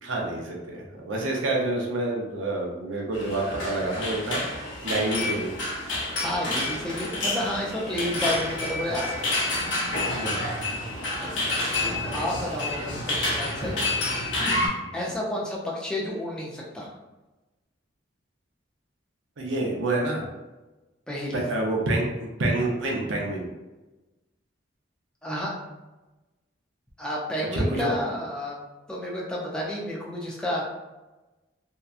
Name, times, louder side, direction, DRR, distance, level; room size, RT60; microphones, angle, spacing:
voice 1, 0.0-4.4 4.8-5.5 8.9-9.0 10.1-10.7 19.4-20.2 21.3-23.5 27.5-27.9, right 2 dB, 75° right, -1 dB, 0.6 m, -28 dB
sound 1, 3.1-14.7, left 2 dB, 70° left, 0.7 m, -29 dB
voice 2, 6.2-9.5 11.2-11.5 11.8-14.0 14.3-16.9 21.1-21.4 25.2-25.5 27.0-28.6 28.9-30.6, left 1 dB, 5° left, -4 dB, 0.4 m, -31 dB
2.7 x 2.2 x 2.3 m, 1.1 s
head